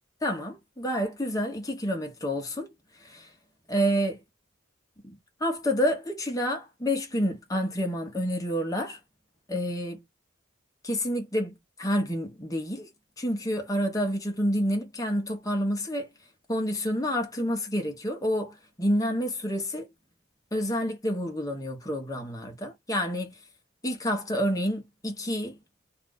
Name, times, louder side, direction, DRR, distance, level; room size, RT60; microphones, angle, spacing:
voice 1, 0.2-2.7 3.0-3.3 3.7-4.2 5.0-9.0 9.5-10.0 10.8-11.5 11.8-12.9 13.2-16.1 16.5-19.9 20.5-23.3 23.8-25.6, equal, 15° left, 0.9 m, -29 dB
2.6 x 2.4 x 3.7 m
head